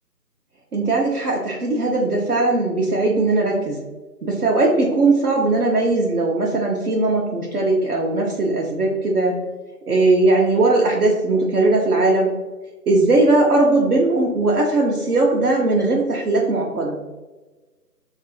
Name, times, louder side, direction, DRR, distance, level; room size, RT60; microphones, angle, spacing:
voice 1, 0.7-3.8 4.2-9.4 9.9-12.3 12.9-17.0, right 2 dB, 65° right, -2 dB, 0.6 m, -19 dB
3.7 x 2.4 x 2.2 m, 1.2 s
figure-of-eight pair, 170°, 49 cm